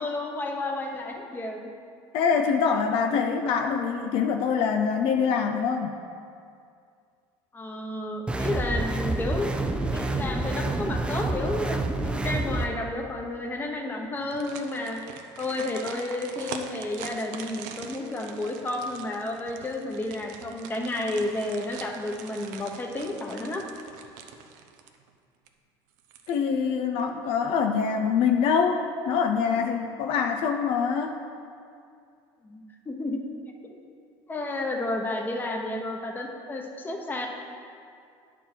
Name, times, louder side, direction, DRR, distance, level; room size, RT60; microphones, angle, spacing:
voice 1, 0.0-1.7 7.5-15.0 15.4-23.6 27.2-27.3 32.4-33.2 33.6-33.8 34.3-37.3, left 2 dB, 20° left, 2 dB, 1.0 m, -31 dB
voice 2, 2.1-6.0 26.3-31.2, left 6 dB, 60° left, 5 dB, 0.5 m, -24 dB
sound 1, 8.3-12.7, right 2 dB, 10° right, 0.5 m, -28 dB
sound 2, 14.2-25.1 25.5-25.6 26.0-26.6 27.0-27.1, right 7 dB, 85° right, 0.7 m, -43 dB
9.8 x 4.5 x 6.2 m, 2.4 s
cardioid pair, 120°, 10 cm